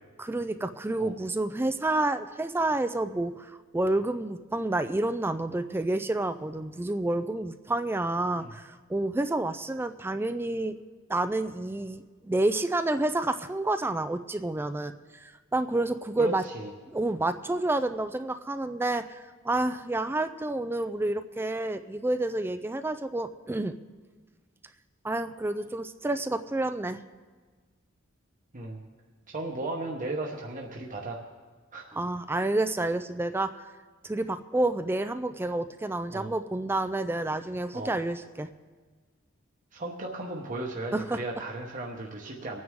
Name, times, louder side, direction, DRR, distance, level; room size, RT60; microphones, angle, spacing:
voice 1, 0.2-10.8 11.1-16.4 16.9-23.8 25.0-27.0 31.9-33.6 34.0-38.5 40.9-41.2, right 2 dB, 10° right, 11 dB, 0.3 m, -29 dB
voice 2, 16.2-16.7 28.5-28.8 29.3-31.2 31.7-32.0 36.1-36.3 37.7-37.9 39.7-42.6, right 2 dB, 40° right, -1 dB, 1.1 m, -35 dB
23.5 x 9.5 x 3.6 m, 1.4 s
head